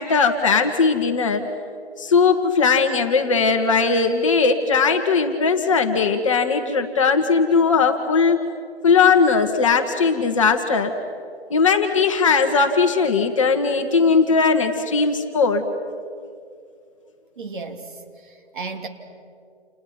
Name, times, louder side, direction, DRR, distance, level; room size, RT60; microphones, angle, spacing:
voice 1, 0.0-1.4 2.0-8.4 8.8-10.9 11.5-15.6, left 5 dB, 30° left, 5 dB, 1.4 m, -19 dB
voice 2, 17.4-18.9, right 4 dB, 45° right, 4 dB, 2.8 m, -34 dB
29.5 x 29.5 x 5.9 m, 2.3 s
hypercardioid pair, 160°, 33 cm